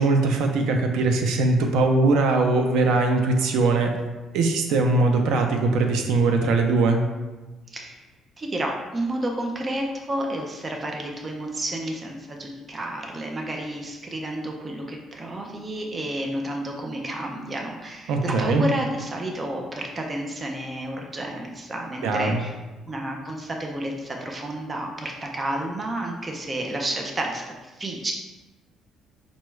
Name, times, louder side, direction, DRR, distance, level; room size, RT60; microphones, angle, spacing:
voice 1, 0.0-3.9 4.3-7.1 18.1-18.6 22.0-22.4, right 3 dB, 80° right, 4 dB, 0.5 m, -21 dB
voice 2, 8.4-22.5 22.9-28.1, right 1 dB, 20° right, 1 dB, 0.4 m, -31 dB
5.1 x 2.3 x 3.1 m, 1.2 s
cardioid pair, 165°, 0 cm